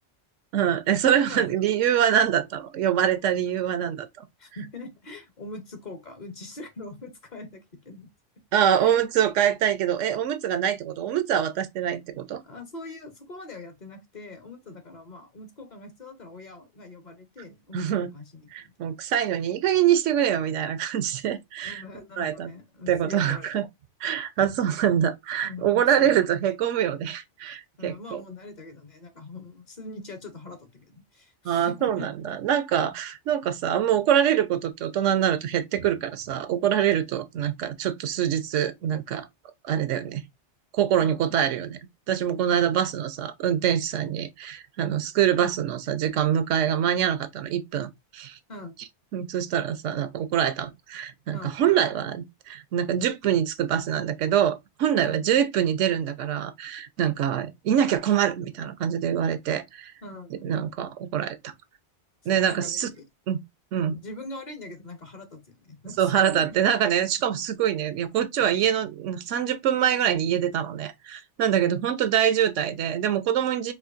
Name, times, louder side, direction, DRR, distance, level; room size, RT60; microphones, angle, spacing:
voice 1, 0.5-4.2 8.5-12.4 17.7-18.1 18.5-21.8 22.2-22.5 22.9-23.6 24.0-28.2 31.4-39.3 39.6-40.2 40.7-41.8 42.1-48.4 49.1-59.9 60.4-61.5 62.3-62.9 63.3-63.4 63.7-63.9 66.0-73.7, right 9 dB, 85° right, 1.0 m, -24 dB
voice 2, 4.4-8.1 8.8-9.0 12.4-18.7 21.6-23.5 25.4-26.2 27.8-32.1 41.0-41.4 42.5-42.6 48.5-48.8 51.3-51.6 54.9-55.3 60.0-60.5 62.3-63.1 63.8-66.5 71.5-71.7, left 2 dB, 45° left, 0.7 m, -42 dB
4.6 x 2.5 x 2.4 m
omnidirectional pair, 1.2 m